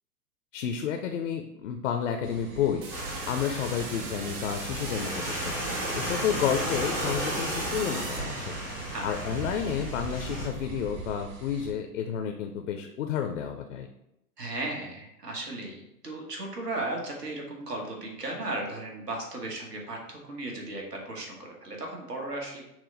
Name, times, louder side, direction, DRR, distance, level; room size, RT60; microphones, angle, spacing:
voice 1, 0.5-2.8 3.3-5.6 5.9-8.6 9.0-13.9, left 8 dB, 55° left, 5 dB, 0.5 m, -31 dB
sound 1, 2.2-11.7, right 4 dB, 55° right, 1.4 m, -41 dB
sound 2, 2.8-9.0, right 4 dB, 35° right, 0.7 m, -40 dB
sound 3, 2.9-10.5, equal, 10° right, 0.4 m, -34 dB
voice 2, 8.9-9.3 14.4-22.7, right 2 dB, 80° right, 0 dB, 1.3 m, -36 dB
6.0 x 2.1 x 3.8 m, 0.84 s
figure-of-eight pair, 110°, 47 cm